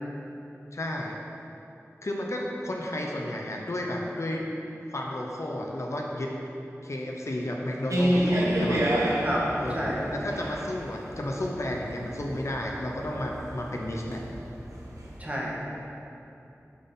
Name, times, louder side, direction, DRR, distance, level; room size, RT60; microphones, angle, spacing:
voice 1, 0.7-1.2 2.0-4.5 4.9-6.3 6.8-8.9 9.6-14.2, left 1 dB, 60° left, 0 dB, 0.7 m, -32 dB
sound 1, 7.9-15.2, equal, 75° right, 0.8 m, -29 dB
voice 2, 15.2-15.8, equal, 25° right, -5 dB, 1.3 m, -30 dB
7.3 x 3.8 x 4.0 m, 2.8 s
wide cardioid pair, 45°, 5 cm